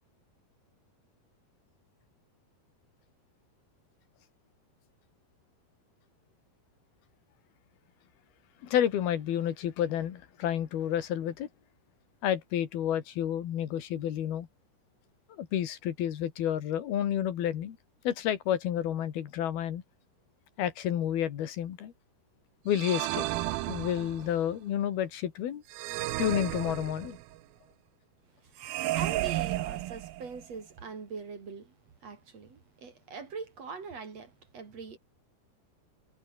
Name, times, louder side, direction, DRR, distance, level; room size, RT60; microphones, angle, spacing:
voice 1, 8.6-11.5 12.2-14.5 15.4-17.8 18.1-19.8 20.6-21.9 22.7-23.3 23.7-25.6 26.2-27.2, left 10 dB, 85° left, 3.9 m, -30 dB
sound 1, 22.7-24.4 25.7-27.4 28.6-30.4, right 17 dB, 80° right, 2.7 m, -33 dB
voice 2, 28.4-31.7 32.0-35.0, right 5 dB, 45° right, 4.2 m, -42 dB
omnidirectional pair, 4.3 m